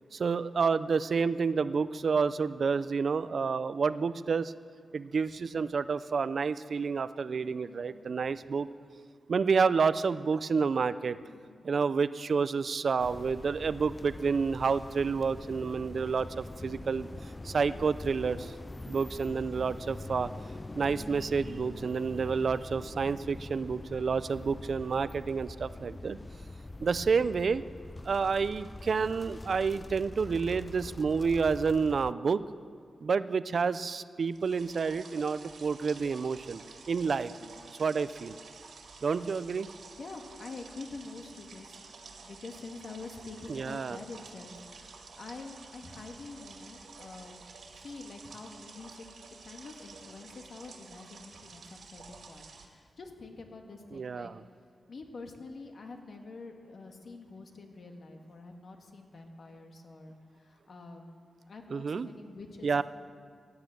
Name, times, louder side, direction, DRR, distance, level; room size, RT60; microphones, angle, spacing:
voice 1, 0.1-4.5 4.9-8.7 9.3-11.2 11.6-17.1 17.4-18.5 18.9-20.3 20.7-26.2 26.8-27.6 28.0-32.4 33.0-36.6 36.9-37.3 37.7-38.4 39.0-39.7 43.5-44.0 53.9-54.4 61.7-62.1 62.6-62.8, right 5 dB, 60° right, 15 dB, 0.5 m, -29 dB
voice 2, 7.6-8.1 11.3-11.6 26.0-26.3 37.4-37.7 40.0-41.8 42.2-47.4 47.8-49.1 49.4-54.3 54.9-62.8, left 3 dB, 60° left, 3 dB, 1.7 m, -47 dB
sound 1, 13.0-32.1, left 2 dB, 20° left, 0.3 m, -44 dB
sound 2, 34.3-52.7, right 4 dB, 80° right, 2.2 m, -51 dB
16.5 x 10.5 x 7.9 m, 2.1 s
wide cardioid pair, 115°, 0 cm